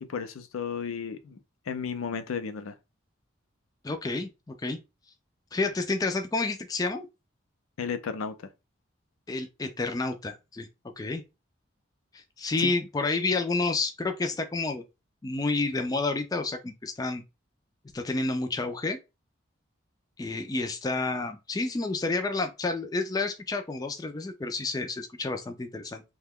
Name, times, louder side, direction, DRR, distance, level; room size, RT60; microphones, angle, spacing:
voice 1, 0.0-1.4 1.7-2.7 7.8-8.3 12.6-12.7, left 6 dB, 90° left, 0.5 m, -33 dB
voice 2, 3.8-4.8 5.5-7.1 9.3-10.7 11.0-11.2 12.1-14.8 15.2-17.2 17.9-19.0 20.2-26.0, left 3 dB, 20° left, 0.3 m, -30 dB
2.8 x 2.2 x 3.5 m
head